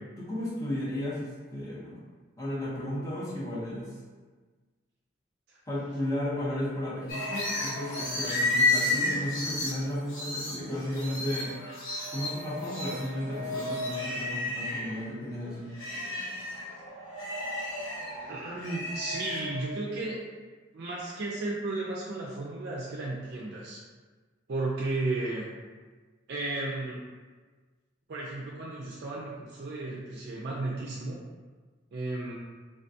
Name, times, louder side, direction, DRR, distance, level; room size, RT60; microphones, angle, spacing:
voice 1, 0.3-2.0 2.4-3.9 5.7-11.5 12.1-15.7, left 1 dB, 15° left, -8 dB, 0.7 m, -34 dB
sound 1, 7.1-14.9 15.3-19.6, left 2 dB, 80° left, 1.0 m, -32 dB
voice 2, 18.2-20.2 20.7-23.8 24.5-25.4 26.3-27.0 28.1-31.2 31.9-32.4, right 2 dB, 55° right, -4 dB, 0.4 m, -34 dB
3.4 x 2.2 x 2.6 m, 1.4 s
head